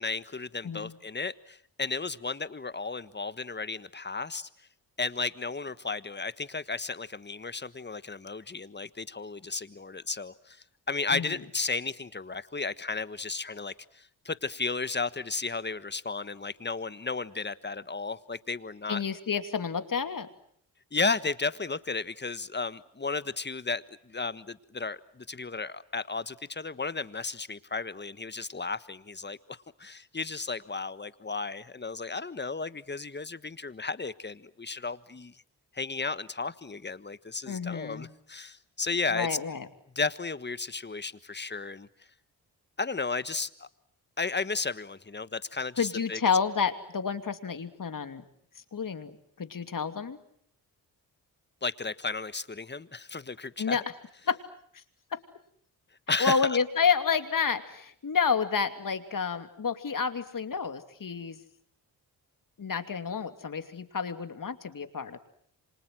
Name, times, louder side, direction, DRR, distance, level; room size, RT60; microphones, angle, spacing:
voice 1, 0.0-4.5 5.0-19.0 20.9-35.4 35.7-39.4 39.9-41.9 42.8-43.7 44.2-46.2 51.6-53.8 56.1-56.6, left 4 dB, 25° left, 1.4 m, -34 dB
voice 2, 0.6-1.0 11.1-11.4 18.9-20.3 37.5-38.1 39.1-39.7 45.8-48.2 48.7-49.1 49.4-50.2 53.6-53.8 54.3-54.4 54.7-54.8 55.1-55.2 56.2-61.4 62.6-65.2, left 6 dB, 50° left, 2.8 m, -29 dB
28.5 x 26.0 x 7.7 m
supercardioid pair, 50°, 41 cm